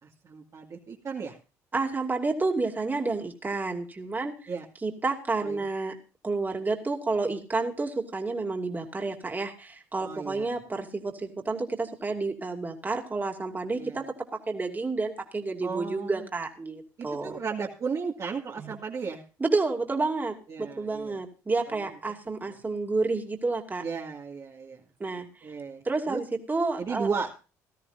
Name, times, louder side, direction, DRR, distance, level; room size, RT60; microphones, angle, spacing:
voice 1, 0.0-1.4 4.5-4.6 5.4-5.7 10.0-10.6 13.7-14.0 15.6-16.3 17.0-19.2 20.5-21.2 21.7-21.9 22.5-22.6 23.8-24.8 25.4-26.2 26.8-27.3, right 5 dB, 45° right, -1 dB, 2.1 m, -35 dB
voice 2, 1.7-4.5 4.8-6.0 6.2-14.0 14.5-17.4 18.6-18.7 19.4-23.8 25.0-25.3 25.8-27.1, right 3 dB, 25° right, 3 dB, 2.6 m, -30 dB
18.0 x 13.5 x 2.6 m, 0.33 s
hypercardioid pair, 65°, 8 cm